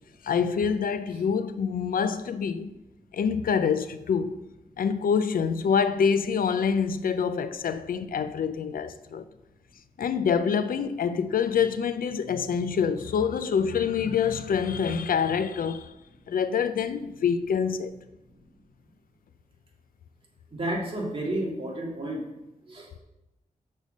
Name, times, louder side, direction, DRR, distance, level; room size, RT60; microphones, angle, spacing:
voice 1, 0.2-2.7 3.1-4.4 4.8-9.3 10.0-15.9 16.3-17.9, left 6 dB, 80° left, 0.5 m, -26 dB
voice 2, 20.5-22.2 22.7-23.0, right 1 dB, 40° right, 2.0 m, -31 dB
6.7 x 6.4 x 5.2 m
wide cardioid pair, 135°, 15 cm